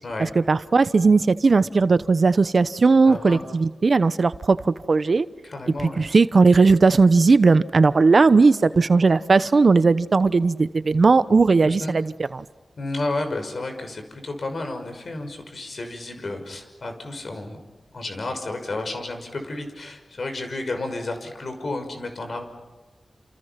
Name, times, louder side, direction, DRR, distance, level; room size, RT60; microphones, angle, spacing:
voice 1, 0.2-5.3 5.8-12.4, right 4 dB, 60° right, 14 dB, 0.9 m, -17 dB
voice 2, 3.0-3.4 5.4-6.0 11.6-11.9 12.8-17.6 17.9-22.4, left 2 dB, 60° left, 6 dB, 5.8 m, -31 dB
30.0 x 28.5 x 6.0 m, 1.2 s
wide cardioid pair, 75°, 0 cm